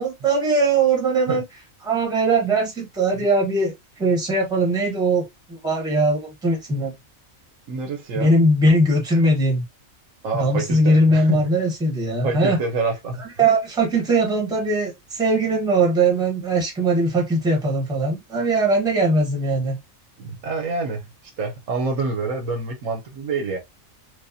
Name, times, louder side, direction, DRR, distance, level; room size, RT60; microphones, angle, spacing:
voice 1, 0.0-1.4 1.8-6.9 8.1-9.6 10.3-12.6 13.2-19.8, right 2 dB, 5° right, 0.9 m, -20 dB
voice 2, 7.7-8.3 10.2-11.5 12.2-13.2 20.2-23.6, right 4 dB, 70° right, 1.2 m, -27 dB
4.9 x 2.1 x 2.6 m
omnidirectional pair, 1.4 m